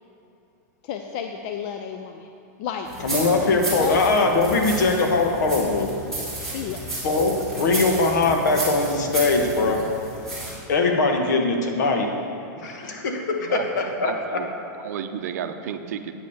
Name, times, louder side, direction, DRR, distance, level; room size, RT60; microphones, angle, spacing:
voice 1, 0.8-2.3 2.6-2.9 3.8-4.0 6.5-6.8 12.6-12.9, left 8 dB, 35° left, 5 dB, 0.4 m, -31 dB
sound 1, 2.8-10.5, right 2 dB, 5° left, 2.4 m, -33 dB
voice 2, 3.0-5.9 7.0-9.8 10.7-12.1 12.6-14.4, left 3 dB, 75° left, 3 dB, 1.3 m, -21 dB
voice 3, 13.4-14.5 14.7-16.1, right 8 dB, 60° right, 8 dB, 0.6 m, -32 dB
8.7 x 5.5 x 7.0 m, 2.8 s
supercardioid pair, 170°, 10 cm